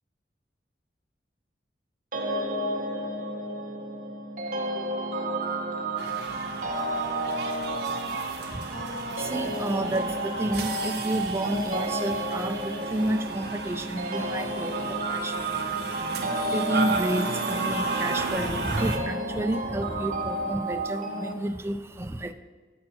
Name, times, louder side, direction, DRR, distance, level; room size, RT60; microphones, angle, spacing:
sound 1, 2.1-21.3, right 2 dB, 45° right, 1.0 m, -31 dB
sound 2, 6.0-19.0, right 3 dB, 70° right, 1.0 m, -34 dB
voice 1, 8.1-22.3, right 1 dB, 15° right, 7 dB, 0.4 m, -31 dB
8.5 x 6.3 x 4.3 m, 1.4 s
head